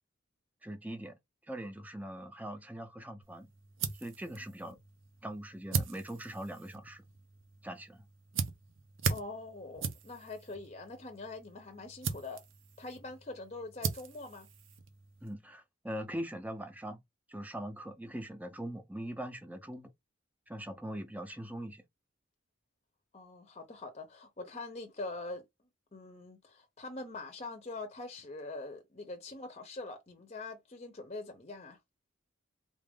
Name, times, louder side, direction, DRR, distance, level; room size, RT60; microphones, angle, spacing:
voice 1, 0.6-1.2 1.4-3.5 4.0-4.8 5.2-7.0 7.6-8.0 15.2-17.0 17.3-19.9 20.5-21.8, right 1 dB, 10° right, 0.7 m, -41 dB
sound 1, 3.2-15.3, right 5 dB, 85° right, 0.7 m, -40 dB
voice 2, 9.1-12.4 12.8-14.5 23.1-25.5 25.9-31.8, left 2 dB, 35° left, 0.8 m, -44 dB
3.8 x 2.5 x 3.5 m
head